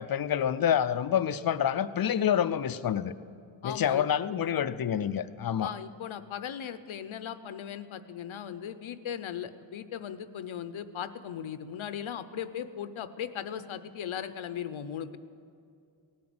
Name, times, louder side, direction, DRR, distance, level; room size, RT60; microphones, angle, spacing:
voice 1, 0.0-3.1 3.6-5.7, left 9 dB, 50° left, 13 dB, 0.5 m, -27 dB
voice 2, 3.6-4.1 5.6-15.2, left 9 dB, 80° left, 12 dB, 0.8 m, -38 dB
17.5 x 9.4 x 7.8 m, 2.4 s
wide cardioid pair, 160°, 48 cm